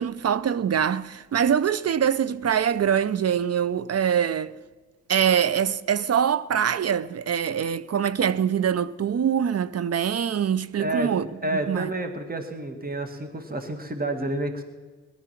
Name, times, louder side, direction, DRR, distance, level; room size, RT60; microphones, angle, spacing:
voice 1, 0.0-4.6 5.1-11.9, right 8 dB, 45° right, 0.6 m, -24 dB
voice 2, 10.8-11.1 11.4-14.6, right 1 dB, 25° right, 2.0 m, -29 dB
18.0 x 12.0 x 5.9 m
supercardioid pair, 50°, 34 cm